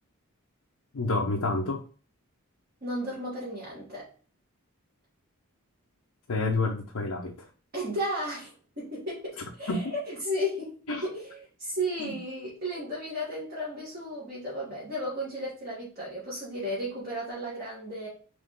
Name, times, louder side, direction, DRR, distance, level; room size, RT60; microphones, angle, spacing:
voice 1, 0.9-1.8 6.3-7.4 9.7-9.9 10.9-11.1 12.0-12.2, left 2 dB, 80° left, 0 dB, 0.7 m, -28 dB
voice 2, 2.8-4.1 7.7-18.1, equal, 45° right, -8 dB, 1.5 m, -34 dB
3.9 x 3.1 x 3.6 m, 0.39 s
head